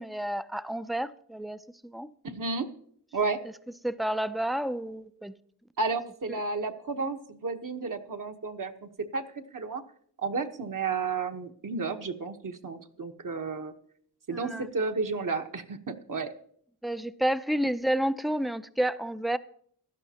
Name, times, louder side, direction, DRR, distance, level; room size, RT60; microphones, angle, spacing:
voice 1, 0.0-2.1 3.8-5.3 6.3-6.4 14.3-14.7 16.8-19.4, right 1 dB, ahead, 0.4 m, -30 dB
voice 2, 2.2-2.7 3.1-3.4 5.8-9.2 9.5-9.8 10.2-13.7 14.3-16.3, right 4 dB, 50° right, 1.2 m, -32 dB
16.5 x 12.0 x 2.9 m
wide cardioid pair, 85°, 39 cm